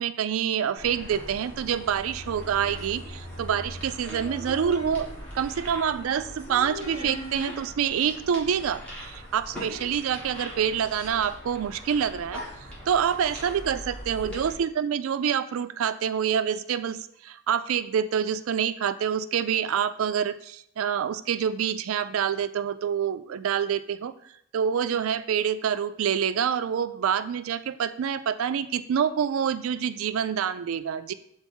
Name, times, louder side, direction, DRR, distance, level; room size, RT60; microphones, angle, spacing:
voice 1, 0.0-5.1 5.3-12.4 12.9-24.1 24.5-31.1, right 8 dB, 75° right, 12 dB, 0.3 m, -27 dB
sound 1, 0.8-14.5, equal, 5° left, 1.7 m, -40 dB
sound 2, 3.5-4.0 4.7-5.6 6.8-7.6, right 1 dB, 70° left, 1.1 m, -41 dB
5.8 x 3.9 x 4.3 m, 0.71 s
head